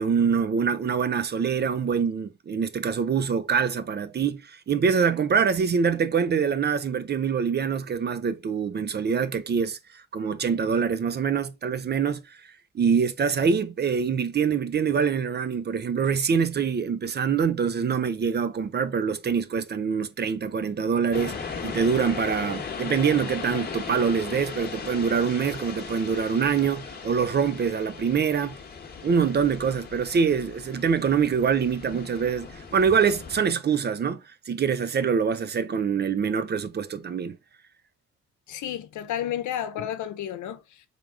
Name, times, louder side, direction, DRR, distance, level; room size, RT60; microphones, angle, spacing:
voice 1, 0.0-12.4 12.7-28.6 29.0-34.2 34.5-37.4, right 6 dB, 35° right, 0.5 m, -25 dB
sound 1, 21.1-33.4, left 5 dB, 35° left, 1.2 m, -37 dB
voice 2, 38.5-40.9, left 10 dB, 75° left, 0.8 m, -32 dB
3.5 x 3.5 x 3.6 m
cardioid pair, 90°, 30 cm